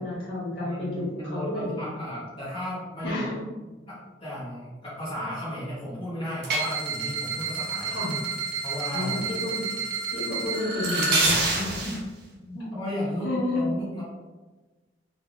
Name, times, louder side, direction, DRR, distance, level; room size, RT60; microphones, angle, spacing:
voice 1, 0.0-2.0 3.0-3.4 7.8-8.2 8.9-9.7 10.1-11.6 13.2-13.7, left 2 dB, 80° left, -6 dB, 1.3 m, -30 dB
voice 2, 0.6-3.4 3.9-8.0 8.6-9.2 11.3-11.4 11.8-12.0 12.4-14.0, left 1 dB, 25° left, -9 dB, 0.8 m, -34 dB
sound 1, 6.4-12.0, right 3 dB, 55° right, 0.6 m, -28 dB
3.2 x 2.3 x 2.5 m, 1.3 s
head